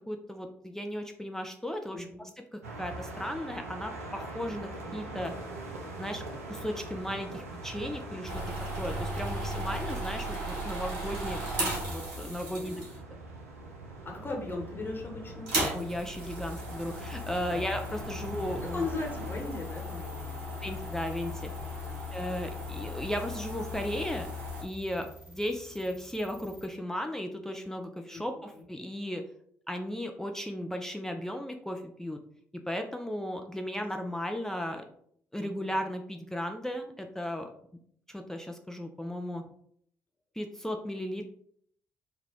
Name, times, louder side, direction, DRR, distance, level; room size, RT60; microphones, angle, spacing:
voice 1, 0.1-2.3 2.8-5.3 6.0-6.2 6.5-8.3 8.8-12.8 15.7-18.8 20.6-21.5 22.1-24.3 24.6-29.2 29.7-32.2 32.7-34.8 35.3-37.5 38.1-39.4 40.4-41.3, equal, 5° left, 4 dB, 0.4 m, -35 dB
voice 2, 1.9-2.2 12.5-12.8 13.9-15.5 17.5-17.6 18.6-20.7 21.8-22.1 25.0-25.1 28.1-28.2 28.5-28.7 35.4-35.7, left 3 dB, 30° left, 0 dB, 1.0 m, -38 dB
sound 1, 2.6-19.4, right 2 dB, 85° right, 0.4 m, -43 dB
sound 2, 8.3-13.1 13.9-14.4 14.7-14.8 15.3-24.6, equal, 65° right, 1.0 m, -36 dB
sound 3, 16.9-26.7, right 1 dB, 15° right, 1.4 m, -53 dB
3.8 x 2.2 x 2.9 m, 0.65 s
figure-of-eight pair, 45°, 7 cm